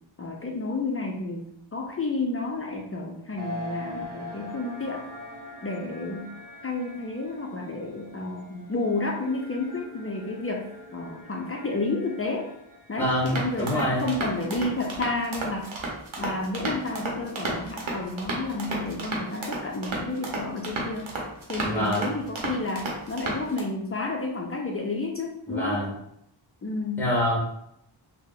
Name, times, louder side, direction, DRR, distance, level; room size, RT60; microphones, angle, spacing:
voice 1, 0.2-5.0 5.6-6.4 6.6-12.5 12.9-15.7 16.2-21.2 21.5-25.9 26.6-27.1, left 2 dB, 30° left, 0 dB, 0.4 m, -31 dB
sound 1, 3.4-14.8, left 2 dB, 40° right, 0.7 m, -43 dB
voice 2, 13.0-14.1 21.6-22.1 25.5-25.9 27.0-27.4, equal, 5° left, -5 dB, 1.1 m, -26 dB
sound 2, 13.3-23.6, right 2 dB, 75° right, 0.8 m, -33 dB
2.7 x 2.1 x 3.7 m, 0.75 s
wide cardioid pair, 85°, 47 cm